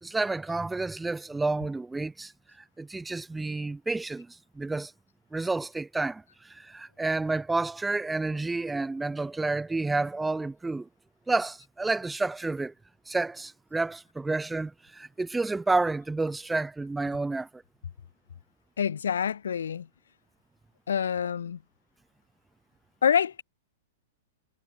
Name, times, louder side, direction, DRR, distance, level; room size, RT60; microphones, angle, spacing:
voice 1, 0.0-2.3 2.8-4.9 5.3-10.9 11.3-12.7 13.1-17.6, right 3 dB, 5° right, 2.1 m, -30 dB
voice 2, 18.8-19.9 20.9-21.6 23.0-23.4, left 8 dB, 90° left, 7.9 m, -26 dB
hypercardioid pair, 130°, 0 cm